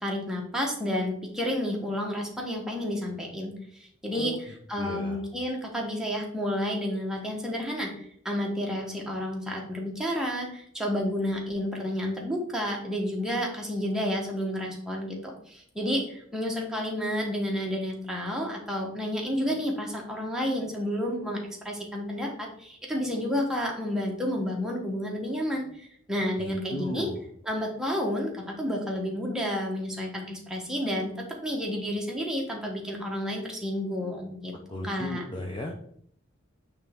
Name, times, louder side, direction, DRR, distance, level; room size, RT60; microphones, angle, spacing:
voice 1, 0.0-27.1 27.4-31.1 31.4-34.5 34.8-35.2, equal, 5° right, -1 dB, 1.1 m, -31 dB
voice 2, 4.8-5.2 26.4-27.2 34.7-35.7, left 1 dB, 25° left, 1 dB, 0.6 m, -35 dB
8.5 x 3.3 x 3.6 m, 0.65 s
head